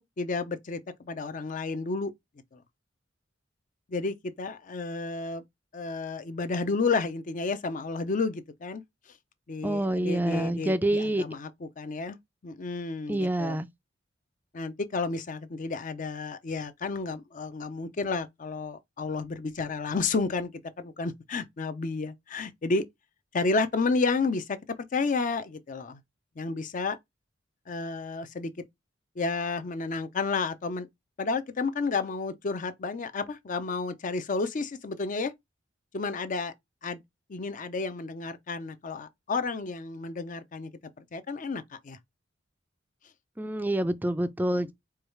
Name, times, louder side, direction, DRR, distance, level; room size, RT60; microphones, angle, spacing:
voice 1, 0.0-2.1 3.9-5.4 5.7-8.8 9.5-12.2 12.4-13.6 14.5-20.5 20.8-22.8 23.3-24.6 24.9-26.0 26.4-27.0 27.7-28.5 29.2-30.9 31.2-35.3 35.9-36.5 36.8-37.0 37.3-40.7 41.0-42.0, left 4 dB, 45° left, 0.5 m, -31 dB
voice 2, 9.6-11.2 13.1-13.7 43.4-44.7, right 1 dB, 10° right, 0.4 m, -27 dB
4.7 x 2.3 x 3.1 m
head